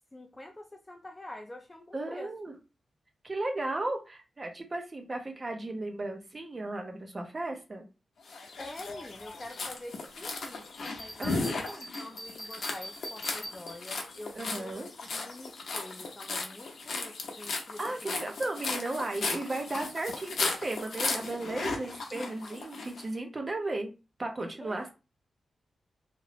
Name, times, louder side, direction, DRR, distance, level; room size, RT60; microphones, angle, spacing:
voice 1, 0.1-2.3 8.6-10.9 11.2-11.6 12.0-14.8 15.1-18.2 24.6-24.9, left 1 dB, 15° left, 4 dB, 0.4 m, -46 dB
voice 2, 1.9-2.5 3.2-7.8 11.2-11.9 14.3-14.9 17.8-23.9 24.2-24.9, right 2 dB, 25° right, 4 dB, 0.6 m, -35 dB
sound 1, 8.3-23.0, left 3 dB, 65° left, 0.7 m, -36 dB
Bell, 10.8-14.2, equal, 40° left, 1.1 m, -44 dB
2.9 x 2.5 x 2.9 m, 0.29 s
wide cardioid pair, 165°, 0 cm